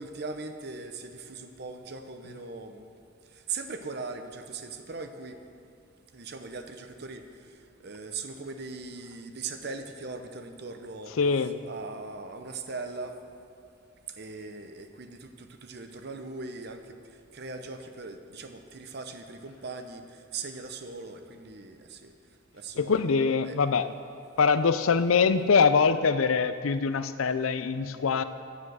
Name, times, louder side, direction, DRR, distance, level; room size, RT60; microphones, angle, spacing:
voice 1, 0.0-2.9 3.5-5.4 6.1-7.2 7.8-11.1 11.6-13.1 14.2-16.8 17.3-20.0 20.3-22.1 22.5-23.1 23.4-23.6, right 4 dB, 50° right, 7 dB, 0.7 m, -39 dB
voice 2, 11.2-11.5 22.8-23.9 24.4-28.2, left 5 dB, 90° left, 12 dB, 0.5 m, -23 dB
9.8 x 9.5 x 6.3 m, 2.4 s
head